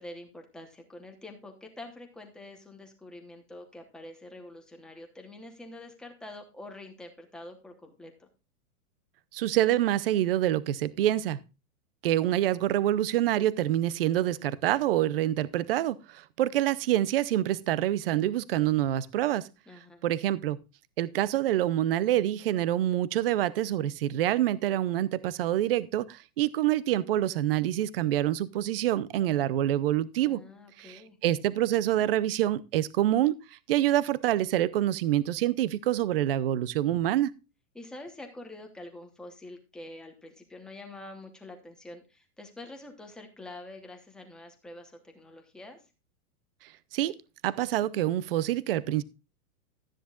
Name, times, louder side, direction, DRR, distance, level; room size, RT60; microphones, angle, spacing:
voice 1, 0.0-8.3 19.7-20.0 30.2-31.2 37.7-45.8, left 2 dB, ahead, 0.9 m, -46 dB
voice 2, 9.3-11.4 12.0-19.5 20.0-20.6 21.0-30.4 30.8-37.3 46.9-47.1 47.4-49.0, right 13 dB, 45° right, 0.6 m, -26 dB
13.0 x 9.9 x 2.4 m
supercardioid pair, 175°, 42 cm